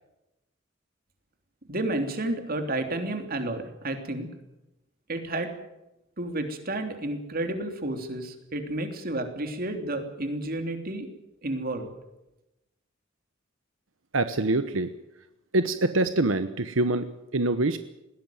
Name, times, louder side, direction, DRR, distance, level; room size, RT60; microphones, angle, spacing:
voice 1, 1.7-4.3 5.1-5.5 6.2-11.1 11.4-11.9, right 1 dB, 50° right, 6 dB, 3.2 m, -31 dB
voice 2, 14.1-14.9 15.5-17.1 17.3-17.8, right 2 dB, 85° right, 10 dB, 1.1 m, -24 dB
20.5 x 17.0 x 9.2 m, 0.93 s
head